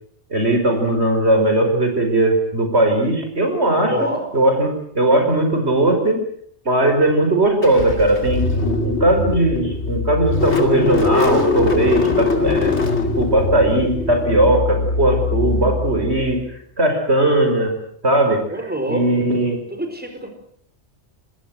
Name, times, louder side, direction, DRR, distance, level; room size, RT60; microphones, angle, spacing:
voice 1, 0.3-6.2 6.7-12.7 13.2-16.4 16.8-17.7 18.0-18.4 18.9-19.6, right 1 dB, 70° right, 4 dB, 5.7 m, -18 dB
voice 2, 3.9-4.2 18.5-19.4 19.7-20.3, right 1 dB, 10° right, 5 dB, 4.9 m, -26 dB
Car / Engine starting, 7.6-16.4, left 3 dB, 75° left, 3.0 m, -21 dB
25.5 x 20.5 x 7.8 m, 0.65 s
omnidirectional pair, 1.2 m